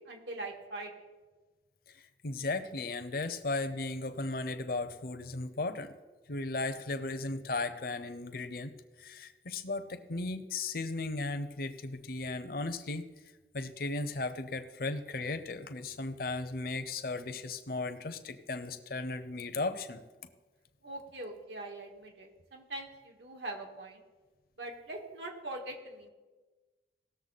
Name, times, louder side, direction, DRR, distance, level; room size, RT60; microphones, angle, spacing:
voice 1, 0.1-0.9 20.8-24.0 24.6-26.1, right 2 dB, 85° right, 1 dB, 1.9 m, -42 dB
voice 2, 1.9-5.9 6.3-8.7 9.0-13.0 13.5-20.0, left 3 dB, 55° left, 9 dB, 0.7 m, -36 dB
18.0 x 6.9 x 4.1 m, 1.2 s
head